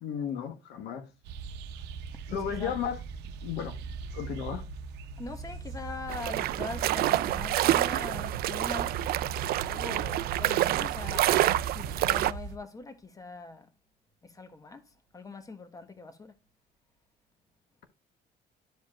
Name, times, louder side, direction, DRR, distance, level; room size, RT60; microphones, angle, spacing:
voice 1, 0.0-1.0 2.3-3.0 3.4-3.8 4.1-4.7, left 8 dB, 75° left, 1.2 m, -34 dB
sound 1, 1.2-12.6, right 4 dB, 80° right, 0.8 m, -40 dB
voice 2, 2.1-2.8 5.2-9.0 9.6-13.7 14.2-16.4, left 3 dB, 20° left, 1.2 m, -42 dB
sound 2, 6.1-12.3, right 14 dB, 65° right, 0.4 m, -27 dB
12.5 x 5.0 x 2.4 m
cardioid pair, 110°, 17 cm